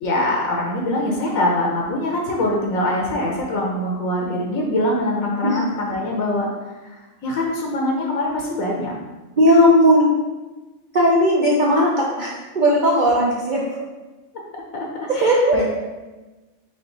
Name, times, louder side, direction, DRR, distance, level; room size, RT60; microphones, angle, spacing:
voice 1, 0.0-6.5 6.9-8.9 14.7-15.6, left 1 dB, 80° left, -1 dB, 1.1 m, -23 dB
voice 2, 9.4-10.1 10.9-13.7 15.2-15.6, equal, 55° right, -4 dB, 0.5 m, -16 dB
3.5 x 3.5 x 3.8 m, 1.2 s
omnidirectional pair, 1.4 m